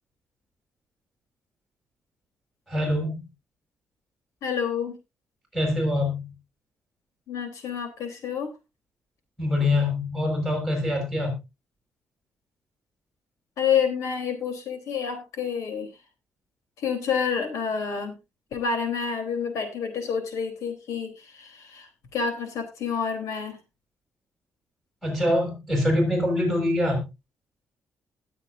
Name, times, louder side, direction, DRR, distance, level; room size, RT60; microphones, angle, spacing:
voice 1, 2.7-3.2 5.5-6.3 9.4-11.4 25.0-27.0, left 1 dB, ahead, 2 dB, 6.3 m, -24 dB
voice 2, 4.4-5.0 7.3-8.5 13.6-15.9 16.8-18.2 18.5-23.6, left 6 dB, 90° left, 6 dB, 3.6 m, -28 dB
20.0 x 7.6 x 2.6 m, 0.25 s
cardioid pair, 160°, 5 cm